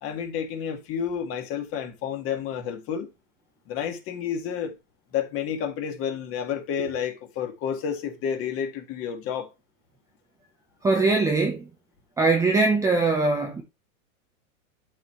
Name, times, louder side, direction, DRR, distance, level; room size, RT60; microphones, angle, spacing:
voice 1, 0.0-3.1 3.7-4.7 5.1-9.5, left 8 dB, 30° left, 1.8 m, -30 dB
voice 2, 10.8-11.6 12.2-13.6, right 3 dB, 10° right, 0.7 m, -21 dB
12.0 x 4.3 x 3.1 m
supercardioid pair, 145°, 42 cm